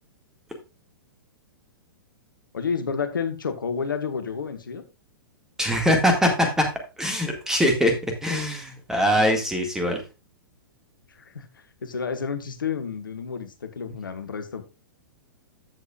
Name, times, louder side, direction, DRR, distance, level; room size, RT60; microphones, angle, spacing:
voice 1, 2.5-4.8 11.1-14.6, left 6 dB, 65° left, 8 dB, 1.3 m, -30 dB
voice 2, 5.6-6.7 7.0-7.9 8.2-10.0, equal, 5° right, 4 dB, 2.0 m, -22 dB
14.5 x 6.1 x 2.4 m, 0.28 s
figure-of-eight pair, 105°, 12 cm